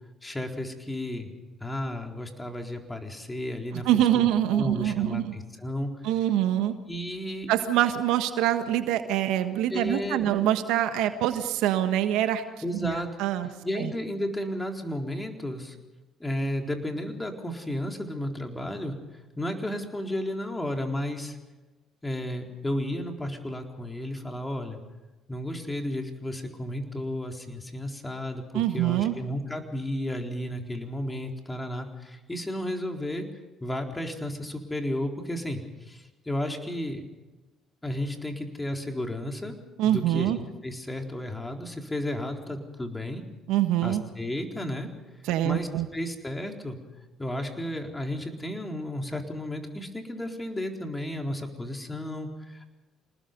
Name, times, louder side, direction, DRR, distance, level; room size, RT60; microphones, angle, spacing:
voice 1, 0.2-1.3 1.6-4.2 4.5-5.9 6.9-7.5 9.7-10.3 12.6-13.1 13.6-15.8 16.2-19.0 19.4-21.4 22.0-24.8 25.3-33.3 33.6-37.0 37.8-39.6 39.8-40.3 40.6-43.2 43.8-44.9 45.4-45.7 45.9-46.8 47.2-52.6, left 1 dB, 15° left, 3 dB, 4.2 m, -33 dB
voice 2, 3.7-5.3 6.0-6.7 7.5-12.4 12.8-13.5 13.8-13.9 28.5-29.1 39.8-40.4 43.5-44.0 45.2-45.9, right 12 dB, 75° right, 9 dB, 1.5 m, -25 dB
27.5 x 19.5 x 5.4 m, 1.1 s
hypercardioid pair, 60°, 0 cm